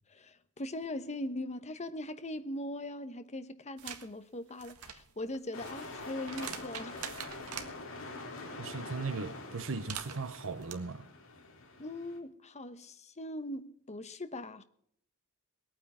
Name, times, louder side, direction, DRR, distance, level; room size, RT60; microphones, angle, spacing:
voice 1, 0.1-7.1 11.8-14.6, left 1 dB, 30° left, 1.1 m, -40 dB
sound 1, 3.8-4.1 4.5-7.7 9.6-10.7, right 8 dB, 80° right, 1.7 m, -44 dB
sound 2, 5.5-12.2, left 2 dB, 65° left, 3.6 m, -45 dB
voice 2, 8.6-11.1, right 4 dB, 65° right, 0.9 m, -38 dB
21.0 x 9.2 x 6.3 m
head